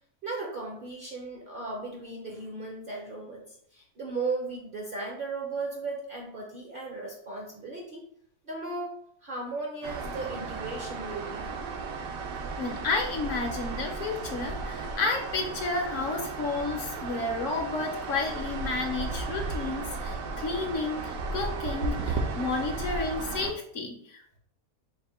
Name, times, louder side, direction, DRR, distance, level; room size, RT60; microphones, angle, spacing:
voice 1, 0.2-3.4 3.7-8.0 8.5-8.9 9.2-11.5, right 3 dB, 55° right, -1 dB, 0.6 m, -36 dB
sound 1, 9.8-23.5, right 4 dB, 70° right, 0.9 m, -35 dB
voice 2, 12.6-24.4, left 3 dB, 65° left, 3 dB, 0.9 m, -31 dB
4.3 x 2.1 x 4.1 m, 0.67 s
omnidirectional pair, 1.6 m